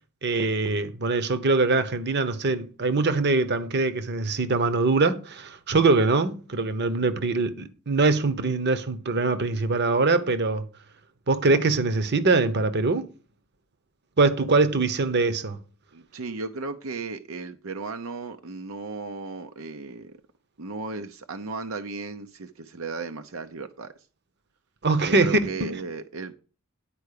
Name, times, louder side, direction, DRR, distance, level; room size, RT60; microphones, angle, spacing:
voice 1, 0.2-10.7 11.3-13.1 14.2-15.6 24.8-25.7, right 3 dB, 55° right, 1.0 m, -23 dB
voice 2, 15.9-20.1 20.6-23.9 25.0-26.3, right 4 dB, 80° right, 0.8 m, -35 dB
10.5 x 4.6 x 6.7 m
head